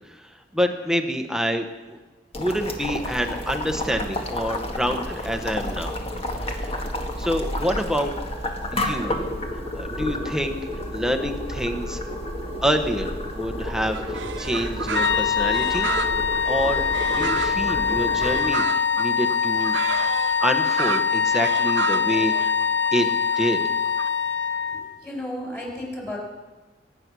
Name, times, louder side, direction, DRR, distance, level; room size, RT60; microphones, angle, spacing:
voice 1, 0.1-2.0 2.4-5.9 6.4-6.7 7.2-8.1 8.7-9.1 9.7-10.6 10.9-12.0 12.6-15.9 16.4-16.8 17.1-19.8 20.4-22.5 22.9-23.1 23.4-23.7, equal, 5° right, 6 dB, 1.0 m, -27 dB
Boiling, 2.3-18.4, left 1 dB, 35° left, 1.8 m, -31 dB
sound 1, 13.9-24.1, right 6 dB, 80° right, 0.7 m, -32 dB
sound 2, 14.9-24.9, left 6 dB, 80° left, 1.0 m, -23 dB
voice 2, 24.7-26.2, left 1 dB, 15° left, -1 dB, 5.1 m, -33 dB
23.0 x 9.7 x 6.2 m, 1.2 s
head